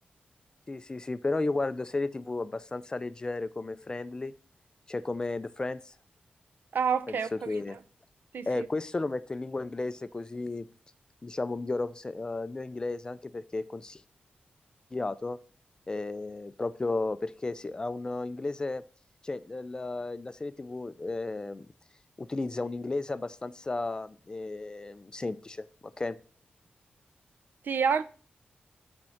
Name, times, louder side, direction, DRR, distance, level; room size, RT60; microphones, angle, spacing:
voice 1, 0.7-4.3 4.9-5.9 7.1-7.8 8.5-10.7 11.2-14.0 14.9-15.4 15.9-18.8 19.2-21.7 22.2-26.2, left 3 dB, 25° left, 0.4 m, -34 dB
voice 2, 6.7-7.5 8.3-8.7 27.7-28.0, right 6 dB, 70° right, 0.5 m, -28 dB
8.7 x 4.4 x 5.6 m
wide cardioid pair, 155°, 3 cm